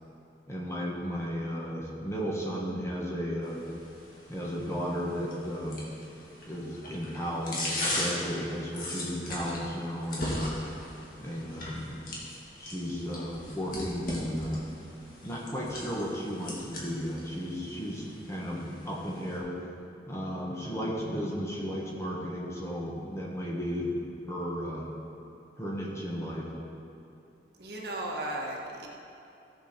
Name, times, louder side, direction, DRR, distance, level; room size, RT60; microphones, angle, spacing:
voice 1, 0.5-3.7 4.3-5.8 6.4-10.6 11.2-12.0 12.6-14.6 15.2-19.5 20.1-24.0 24.3-24.9 25.6-26.5, equal, 15° left, -4 dB, 1.6 m, -34 dB
sound 1, 3.4-19.4, left 1 dB, 50° left, 2.2 m, -39 dB
voice 2, 27.6-28.9, right 1 dB, 60° right, -2 dB, 1.4 m, -35 dB
15.0 x 7.0 x 4.5 m, 2.8 s
head